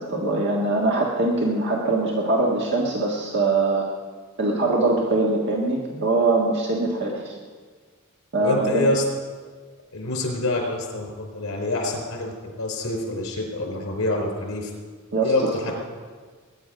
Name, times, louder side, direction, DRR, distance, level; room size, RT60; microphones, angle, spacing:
voice 1, 0.0-3.9 4.4-7.3 8.3-8.9 15.1-15.3, right 2 dB, 55° right, -2 dB, 1.6 m, -22 dB
voice 2, 8.4-9.0 9.9-14.7 15.2-15.7, left 2 dB, 70° left, 2 dB, 4.5 m, -26 dB
21.0 x 10.0 x 5.2 m, 1.5 s
head